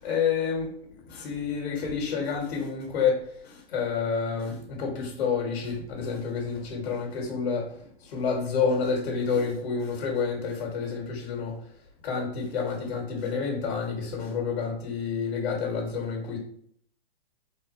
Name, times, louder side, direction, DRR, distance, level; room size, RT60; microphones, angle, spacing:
voice 1, 0.0-0.7 1.1-3.2 3.4-7.6 8.0-11.5 12.0-16.4, left 5 dB, 60° left, -1 dB, 1.3 m, -29 dB
3.7 x 2.2 x 2.9 m, 0.64 s
hypercardioid pair, 140°, 32 cm